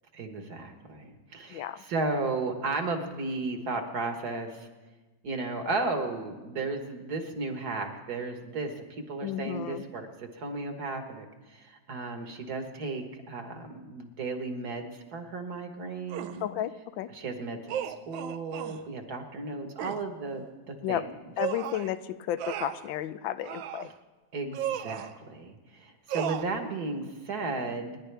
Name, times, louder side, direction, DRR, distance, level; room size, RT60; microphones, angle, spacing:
voice 1, 0.1-4.7 5.2-16.5 17.1-21.1 24.3-28.0, right 3 dB, 55° right, 5 dB, 1.8 m, -34 dB
voice 2, 9.2-9.8 16.4-17.1 20.8-21.0 21.4-23.9, left 12 dB, 80° left, 13 dB, 1.3 m, -33 dB
sound 1, 16.1-16.4 17.7-18.8 19.8-20.0 21.4-21.9 22.4-22.9 23.4-23.9 24.5-25.1 26.1-26.4, right 10 dB, 80° right, 1.4 m, -34 dB
29.0 x 10.5 x 3.4 m, 1.2 s
omnidirectional pair, 2.1 m